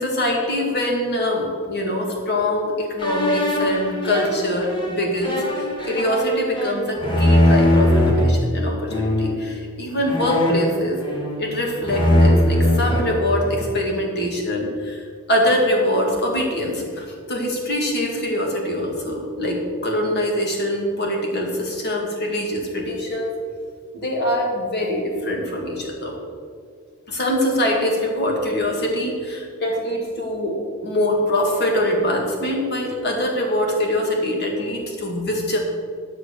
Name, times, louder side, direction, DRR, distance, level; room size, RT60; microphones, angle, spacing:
voice 1, 0.0-11.0 11.4-23.3 23.9-26.1 27.1-35.6, left 1 dB, 50° left, 0 dB, 2.1 m, -23 dB
sound 1, 3.0-8.2 8.9-9.4 10.1-11.5 11.8-13.8, left 1 dB, 20° left, 1.6 m, -20 dB
11.0 x 6.1 x 6.6 m, 2.2 s
head